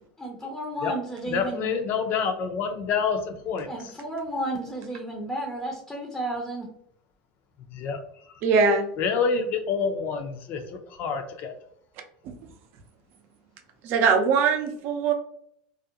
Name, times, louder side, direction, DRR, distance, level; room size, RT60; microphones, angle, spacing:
voice 1, 0.2-1.7 3.7-6.7, right 1 dB, 5° left, -1 dB, 0.6 m, -32 dB
voice 2, 1.3-3.9 7.7-8.0 9.0-11.5, left 5 dB, 50° left, 6 dB, 0.5 m, -27 dB
voice 3, 8.4-8.9 12.2-12.3 13.8-15.1, right 5 dB, 55° right, 5 dB, 0.5 m, -21 dB
2.4 x 2.1 x 2.7 m, 0.68 s
supercardioid pair, 120°, 4 cm